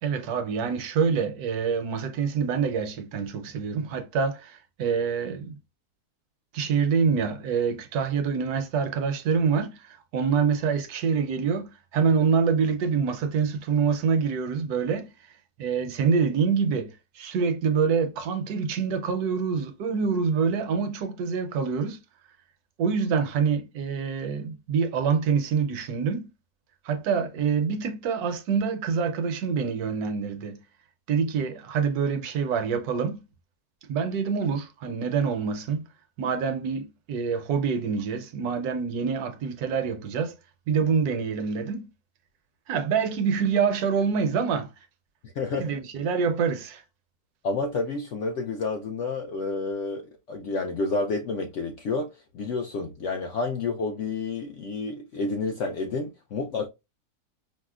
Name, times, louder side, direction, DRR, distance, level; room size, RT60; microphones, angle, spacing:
voice 1, 0.0-5.6 6.5-15.1 15.6-22.0 22.8-26.3 26.8-30.6 31.1-33.2 33.8-35.8 36.2-40.3 40.7-41.9 42.7-44.7 45.5-46.8, right 6 dB, 75° right, 1.1 m, -26 dB
voice 2, 45.2-45.7 47.4-56.7, left 3 dB, 70° left, 0.7 m, -30 dB
4.8 x 2.0 x 2.3 m
omnidirectional pair, 1.7 m